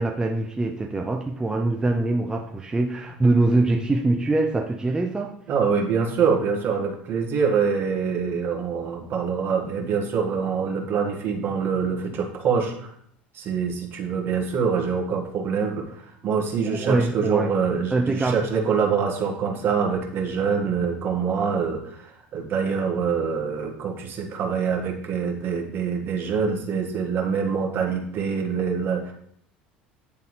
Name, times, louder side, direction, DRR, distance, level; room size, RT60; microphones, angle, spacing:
voice 1, 0.0-5.3 16.8-17.6 17.9-18.4, right 2 dB, 15° right, 2 dB, 0.6 m, -23 dB
voice 2, 5.5-12.9 13.3-29.1, right 6 dB, 40° right, 0 dB, 1.6 m, -25 dB
10.0 x 3.4 x 3.2 m, 0.70 s
figure-of-eight pair, 70°, 5 cm